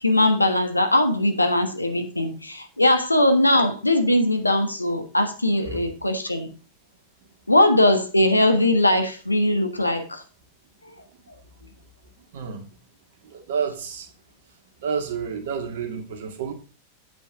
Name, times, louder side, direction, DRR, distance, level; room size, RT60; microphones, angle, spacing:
voice 1, 0.0-6.5 7.5-10.2, left 1 dB, 85° left, 1.4 m, -20 dB
voice 2, 12.3-12.7 13.2-14.1 14.8-16.5, right 6 dB, 55° right, 2.2 m, -30 dB
8.6 x 8.3 x 3.8 m
figure-of-eight pair, 90°, 0 cm